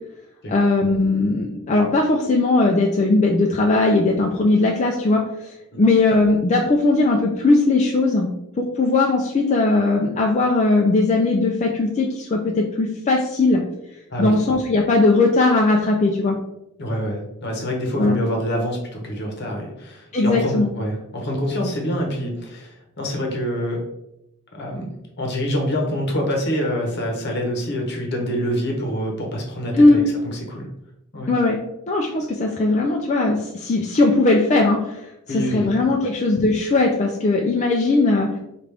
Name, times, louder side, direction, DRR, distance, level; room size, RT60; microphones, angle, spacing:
voice 1, 0.5-8.3 8.6-13.6 14.2-16.4 18.0-18.2 20.1-20.7 29.7-30.0 31.3-31.6 31.9-38.4, left 2 dB, 35° left, 0 dB, 0.4 m, -19 dB
voice 2, 16.8-23.8 24.5-30.7 31.1-31.3 35.3-35.7 36.0-36.1, equal, 55° left, 0 dB, 0.9 m, -26 dB
5.0 x 2.5 x 3.3 m, 0.86 s
head